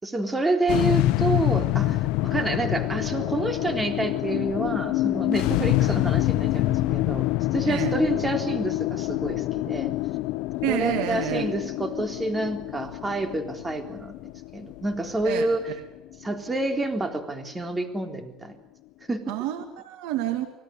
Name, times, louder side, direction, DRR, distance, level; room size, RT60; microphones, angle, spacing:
voice 1, 0.0-7.2 7.5-9.9 10.7-15.7 16.2-18.6 19.1-19.3, right 2 dB, 15° right, 7 dB, 3.7 m, -28 dB
sound 1, 0.7-17.1, left 17 dB, 80° left, 0.9 m, -26 dB
voice 2, 7.7-8.0 10.6-11.4 15.2-15.5 19.3-20.5, right 13 dB, 85° right, 8 dB, 2.1 m, -28 dB
25.5 x 17.5 x 9.8 m, 0.85 s
cardioid pair, 105°, 0 cm